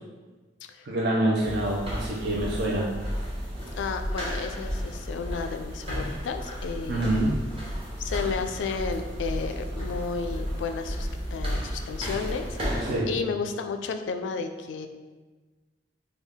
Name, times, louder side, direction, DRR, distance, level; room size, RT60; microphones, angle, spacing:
voice 1, 0.9-2.9 6.9-7.4 12.9-13.1, right 1 dB, 60° right, -4 dB, 0.5 m, -26 dB
sound 1, 1.4-13.0, equal, 30° right, 1.0 m, -33 dB
voice 2, 3.7-7.1 8.0-14.9, left 5 dB, 80° left, 7 dB, 0.3 m, -32 dB
3.5 x 2.3 x 3.4 m, 1.3 s
head